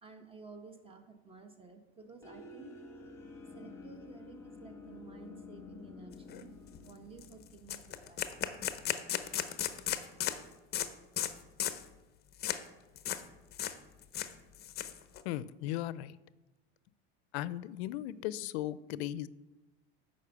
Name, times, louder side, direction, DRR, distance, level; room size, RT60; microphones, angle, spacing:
voice 1, 0.0-2.7 3.5-6.5 6.8-8.3, right 4 dB, 15° right, 6 dB, 1.2 m, -53 dB
sound 1, 2.2-8.8, left 3 dB, 10° left, 1.5 m, -51 dB
sound 2, 6.3-6.4 6.7-6.9 7.2-7.3 7.7-10.4 10.7-10.9 11.2-11.3 11.6-11.8 12.4-12.6 13.0-13.2 13.5-13.7 14.0-15.2, left 11 dB, 30° left, 0.7 m, -35 dB
voice 2, 15.2-16.2 17.3-19.3, left 13 dB, 75° left, 18 dB, 0.5 m, -37 dB
8.3 x 5.5 x 6.9 m, 1.1 s
supercardioid pair, 125°, 33 cm